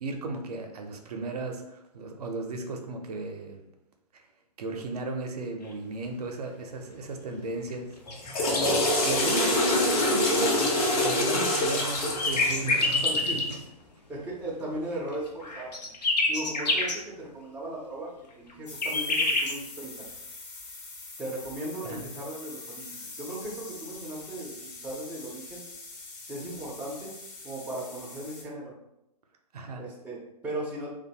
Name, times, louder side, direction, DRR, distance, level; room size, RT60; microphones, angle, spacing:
voice 1, 0.0-3.6 4.1-4.2 4.6-8.0 8.3-8.4 9.0-13.4 21.8-22.1 29.5-29.8, right 2 dB, 70° right, 3 dB, 0.5 m, -35 dB
sound 1, 8.1-10.4 11.7-13.6 15.1-17.0 18.5-19.5, left 3 dB, 80° left, 0.6 m, -27 dB
Water / Toilet flush, 8.1-13.3, left 1 dB, 60° left, 1.0 m, -25 dB
voice 2, 9.2-9.6 13.0-13.4 14.1-15.7 16.3-20.0 21.2-25.7 26.3-27.1 27.4-28.7 29.8-30.9, right 1 dB, 5° right, -5 dB, 0.4 m, -37 dB
sound 2, 18.7-28.4, left 3 dB, 35° left, 0.7 m, -44 dB
2.5 x 2.2 x 2.7 m, 0.85 s
hypercardioid pair, 125°, 21 cm